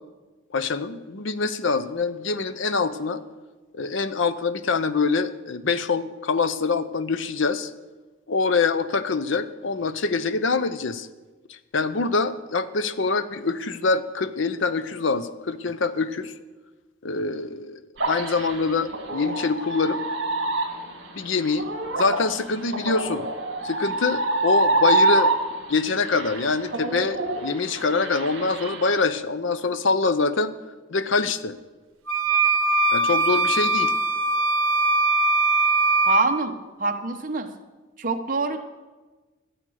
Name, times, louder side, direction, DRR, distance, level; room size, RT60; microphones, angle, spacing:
voice 1, 0.5-3.2 3.7-7.7 8.3-11.1 11.7-16.3 17.0-20.0 21.1-21.7 22.0-23.3 23.6-25.3 25.7-30.5 30.9-31.6 32.9-33.9, left 4 dB, 65° left, 13 dB, 0.6 m, -25 dB
sound 1, 18.0-25.7 26.1-29.0, right 2 dB, 60° right, 2.2 m, -25 dB
sound 2, 32.1-36.2, right 2 dB, 85° right, 0.8 m, -21 dB
voice 2, 36.1-37.5 38.0-38.6, right 3 dB, 40° right, 5 dB, 0.9 m, -25 dB
13.5 x 8.0 x 6.4 m, 1.2 s
head